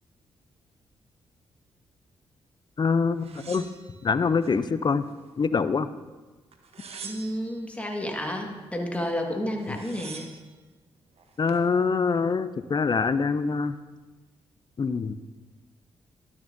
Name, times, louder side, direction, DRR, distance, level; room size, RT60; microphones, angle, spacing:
voice 1, 2.8-3.7 4.0-5.1 5.4-5.9 9.7-9.8 11.4-13.7 14.8-15.1, left 5 dB, 35° left, 14 dB, 0.5 m, -24 dB
sound 1, 3.2-4.6 5.0-5.8 6.5-7.6 9.2-9.3 9.5-10.5 11.2-11.7, right 5 dB, 60° right, 0.9 m, -45 dB
voice 2, 7.0-10.3, equal, 10° left, 1 dB, 1.6 m, -31 dB
12.0 x 7.2 x 2.6 m, 1.2 s
hypercardioid pair, 45°, 12 cm